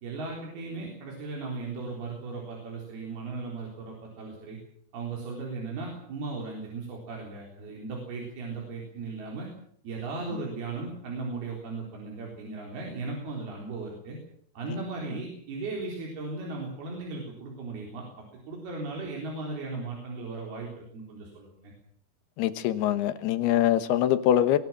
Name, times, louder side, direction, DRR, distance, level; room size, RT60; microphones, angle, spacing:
voice 1, 0.0-4.6 4.9-9.5 9.8-14.2 14.6-21.7, right 3 dB, 70° right, -1 dB, 5.9 m, -37 dB
voice 2, 22.4-24.6, left 11 dB, 85° left, 12 dB, 3.2 m, -23 dB
21.5 x 18.0 x 7.4 m, 0.66 s
omnidirectional pair, 4.6 m